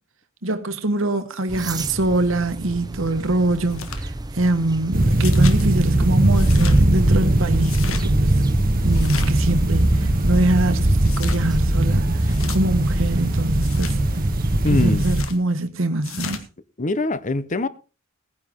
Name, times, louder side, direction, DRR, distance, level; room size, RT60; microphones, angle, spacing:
voice 1, 0.4-8.4 8.8-14.0 14.7-16.4, right 2 dB, 70° right, 1.3 m, -24 dB
sound 1, 1.5-15.0, right 2 dB, 20° right, 0.8 m, -34 dB
sound 2, 3.7-4.0 5.2-5.6 6.3-6.8 7.6-8.0 8.9-9.5 11.0-11.4 12.2-12.6 13.6-14.0 15.0-15.4 16.0-16.4, left 6 dB, 85° left, 1.8 m, -34 dB
sound 3, 4.9-15.2, right 1 dB, 45° right, 1.1 m, -19 dB
voice 2, 14.6-15.0 16.8-17.7, left 2 dB, 40° left, 0.9 m, -22 dB
18.0 x 9.9 x 3.7 m
head